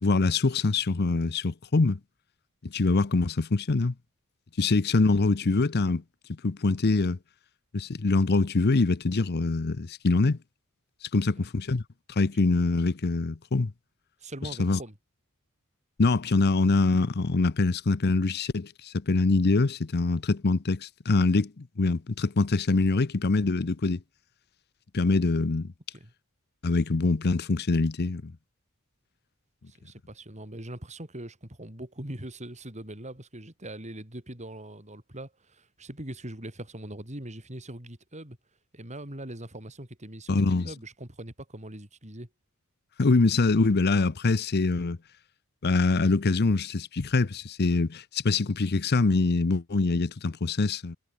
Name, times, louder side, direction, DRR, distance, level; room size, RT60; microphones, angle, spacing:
voice 1, 0.0-2.0 2.6-3.9 4.6-6.0 6.4-7.2 7.7-10.4 11.0-11.8 12.1-13.7 14.6-14.8 16.0-24.0 24.9-25.7 26.6-28.3 40.3-40.7 43.0-45.0 45.6-51.0, left 3 dB, 45° left, 0.7 m, -24 dB
voice 2, 14.2-14.9 25.9-26.1 29.7-38.4 38.7-42.3, right 1 dB, 30° right, 4.7 m, -41 dB
head